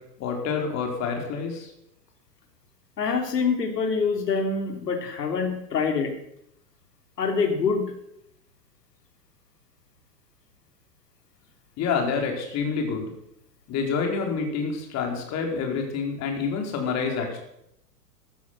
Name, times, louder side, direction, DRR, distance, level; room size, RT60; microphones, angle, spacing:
voice 1, 0.2-1.7 11.8-13.1 13.7-17.4, left 5 dB, 35° left, 3 dB, 4.3 m, -27 dB
voice 2, 3.0-6.1 7.2-7.9, left 5 dB, 75° left, 5 dB, 3.3 m, -25 dB
14.0 x 13.5 x 6.2 m, 0.78 s
hypercardioid pair, 110°, 49 cm